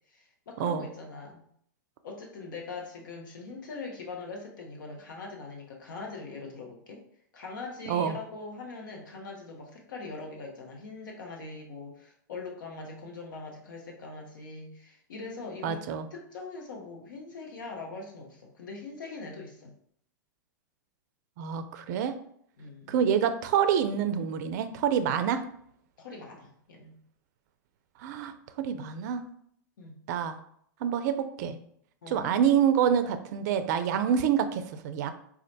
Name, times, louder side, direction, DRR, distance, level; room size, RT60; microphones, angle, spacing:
voice 1, 0.1-1.4 2.0-7.0 7.3-15.8 16.1-19.7 22.6-22.9 26.0-27.0 29.8-30.0 32.0-32.3, left 3 dB, 75° left, 1 dB, 1.0 m, -42 dB
voice 2, 7.9-8.2 15.6-16.1 21.4-22.1 22.9-25.4 28.0-29.2 30.1-30.4 30.8-31.6 32.1-35.1, right 8 dB, 60° right, 10 dB, 0.4 m, -27 dB
4.3 x 2.4 x 2.7 m, 0.67 s
hypercardioid pair, 110°, 11 cm